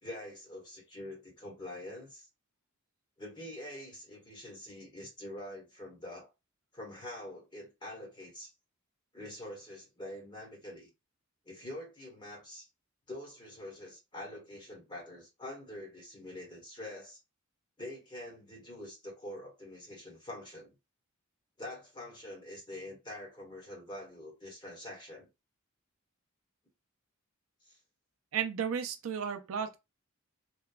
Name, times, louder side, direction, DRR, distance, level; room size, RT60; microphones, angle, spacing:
voice 1, 0.0-2.3 3.2-6.3 6.7-8.5 9.1-10.9 11.4-12.7 13.1-17.2 17.8-20.8 21.6-25.3 27.6-27.8, left 1 dB, 20° left, 1.1 m, -45 dB
voice 2, 28.3-29.8, right 7 dB, 70° right, 0.4 m, -33 dB
2.9 x 2.2 x 2.3 m
head